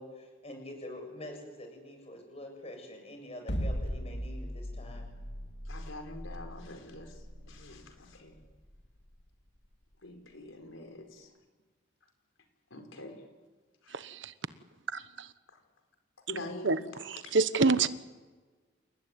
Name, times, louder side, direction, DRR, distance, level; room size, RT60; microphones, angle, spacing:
voice 1, 0.0-5.1, left 1 dB, 30° left, 4 dB, 7.2 m, -45 dB
sound 1, 3.5-9.7, equal, 60° left, 2.3 m, -38 dB
voice 2, 5.6-8.4 10.0-11.3 12.7-13.2 13.8-14.1 15.5-15.6 16.3-17.3, left 2 dB, 90° left, 5 dB, 4.7 m, -45 dB
voice 3, 13.9-14.3 14.9-15.0 16.6-16.8 17.1-17.9, right 4 dB, 70° right, 13 dB, 1.1 m, -26 dB
29.0 x 18.5 x 9.6 m, 1.4 s
head